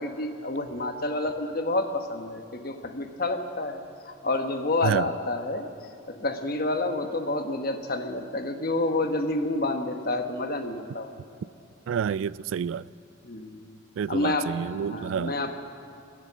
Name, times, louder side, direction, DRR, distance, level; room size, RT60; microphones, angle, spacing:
voice 1, 0.0-5.7 6.1-11.1 13.2-13.7 14.1-14.5 14.8-15.6, left 2 dB, 50° left, 1.1 m, -29 dB
voice 2, 11.9-12.9 14.0-15.4, right 7 dB, 80° right, 0.3 m, -29 dB
21.0 x 7.4 x 8.3 m
head